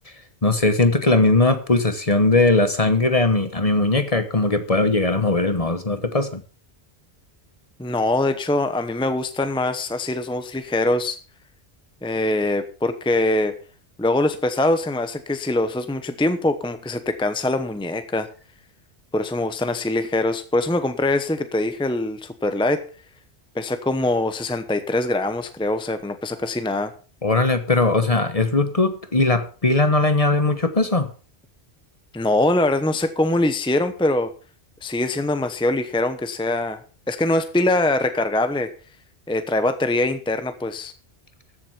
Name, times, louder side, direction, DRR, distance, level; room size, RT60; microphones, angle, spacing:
voice 1, 0.4-6.4 27.2-31.1, left 2 dB, 35° left, 9 dB, 1.3 m, -19 dB
voice 2, 7.8-11.2 12.0-13.6 14.0-18.3 19.1-22.8 23.5-26.9 32.1-34.3 34.8-36.8 37.1-38.7 39.3-40.9, left 2 dB, 5° left, 9 dB, 0.9 m, -23 dB
14.0 x 7.8 x 5.6 m, 0.37 s
omnidirectional pair, 1.1 m